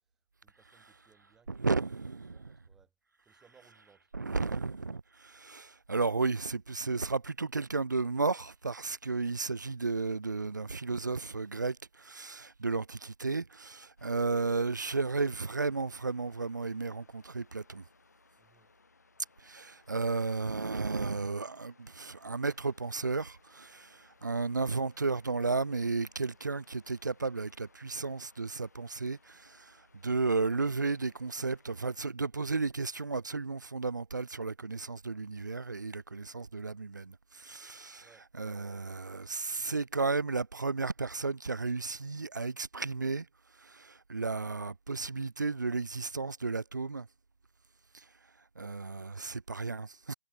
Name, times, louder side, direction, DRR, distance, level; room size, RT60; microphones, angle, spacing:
voice 1, 0.4-1.5 2.3-2.9 3.2-4.1 18.4-18.7 38.0-38.3 47.8-47.9, right 6 dB, 5° right, 5.7 m, -65 dB
voice 2, 1.5-2.4 4.1-17.8 19.4-38.0 38.4-43.3 43.6-47.1 47.9-48.0 48.6-50.1, right 3 dB, 45° right, 0.4 m, -33 dB
Waves surf, 14.0-32.0, left 4 dB, 40° left, 6.2 m, -65 dB
figure-of-eight pair, 175°, 14 cm